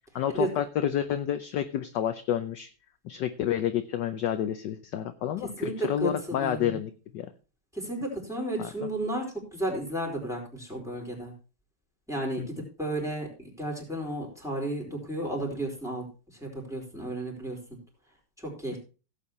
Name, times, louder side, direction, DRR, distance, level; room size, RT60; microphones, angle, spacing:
voice 1, 0.1-2.7 3.0-7.3 8.6-8.7 12.4-12.5, left 10 dB, 65° left, 9 dB, 1.2 m, -29 dB
voice 2, 5.4-6.8 7.7-9.2 9.5-11.3 12.1-16.0 16.3-17.6 18.4-18.8, right 1 dB, ahead, -1 dB, 4.5 m, -33 dB
17.0 x 8.5 x 3.1 m, 0.34 s
omnidirectional pair, 2.2 m